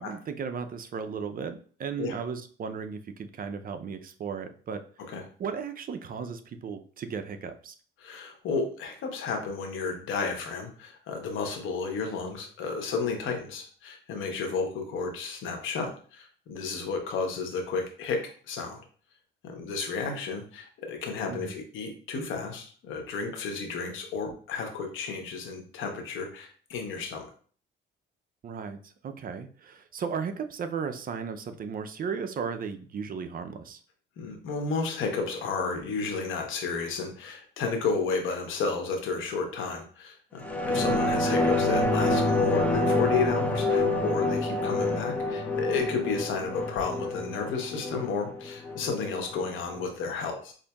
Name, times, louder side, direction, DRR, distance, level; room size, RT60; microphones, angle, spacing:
voice 1, 0.0-4.8 5.4-7.7 21.3-21.5 28.4-33.8 40.8-41.0, right 6 dB, 45° right, 8 dB, 0.5 m, -35 dB
voice 2, 8.0-18.8 19.4-27.3 34.2-50.5, left 4 dB, 85° left, 3 dB, 0.9 m, -32 dB
sound 1, 40.4-49.4 49.8-49.9, left 2 dB, 5° left, 0.5 m, -27 dB
5.0 x 2.6 x 2.2 m, 0.43 s
cardioid pair, 90°, 20 cm